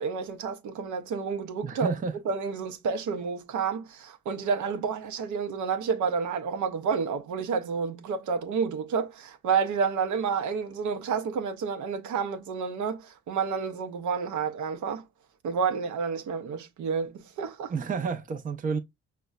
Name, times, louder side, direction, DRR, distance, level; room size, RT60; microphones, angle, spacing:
voice 1, 0.0-1.9 2.3-15.0 15.4-17.7, right 6 dB, 75° right, 0.6 m, -30 dB
voice 2, 1.6-2.1 17.7-18.8, right 5 dB, 30° right, 0.5 m, -30 dB
5.1 x 2.1 x 2.3 m
cardioid pair, 90°, 30 cm